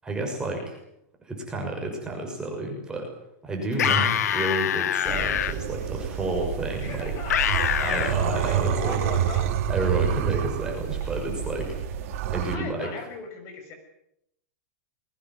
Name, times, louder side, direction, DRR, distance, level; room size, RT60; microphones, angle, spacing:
voice 1, 0.0-0.8 1.2-3.1 3.4-7.5 7.8-9.0 9.7-11.8 12.3-12.9, right 2 dB, 10° right, 1 dB, 6.3 m, -30 dB
sound 1, 3.7-5.5 7.3-8.1, left 9 dB, 90° left, 2.1 m, -24 dB
sound 2, 5.1-12.6, right 9 dB, 55° right, 3.1 m, -28 dB
voice 2, 6.8-9.5 12.5-13.7, left 4 dB, 35° left, 5 dB, 6.5 m, -38 dB
21.5 x 19.5 x 9.6 m, 0.78 s
supercardioid pair, 160°, 8 cm